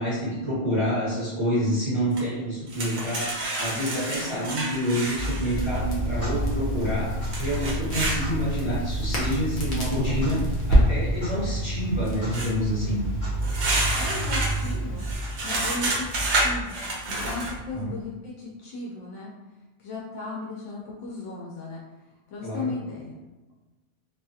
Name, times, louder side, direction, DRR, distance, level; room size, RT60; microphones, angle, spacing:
voice 1, 0.0-3.3 3.6-7.1 7.4-13.1 17.7-17.9 22.4-22.7, equal, 25° left, -10 dB, 1.1 m, -28 dB
sound 1, 2.2-2.3 2.7-5.8 7.3-8.2 12.3-12.5 13.4-17.6, right 2 dB, 70° right, 0.9 m, -29 dB
Clock, 5.0-17.0, left 1 dB, 15° right, 0.9 m, -34 dB
Crackle, 5.6-15.1, right 1 dB, 50° left, 0.8 m, -27 dB
voice 2, 13.8-15.0 15.4-19.3 19.8-21.8 22.3-23.2, left 3 dB, 85° left, -4 dB, 0.9 m, -36 dB
2.6 x 2.3 x 2.7 m, 1.1 s
omnidirectional pair, 1.2 m